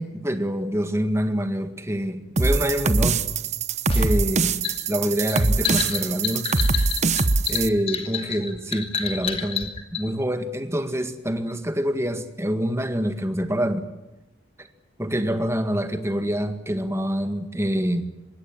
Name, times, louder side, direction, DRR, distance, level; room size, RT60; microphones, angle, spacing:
voice 1, 0.0-3.3 3.9-4.6 4.9-6.7 7.5-13.9 14.6-14.7 15.0-18.1, equal, 15° right, 1.8 m, -26 dB
sound 1, 2.4-7.7, right 3 dB, 35° right, 1.0 m, -23 dB
sound 2, 3.9-10.1, left 7 dB, 30° left, 2.4 m, -29 dB
25.5 x 21.5 x 7.4 m
head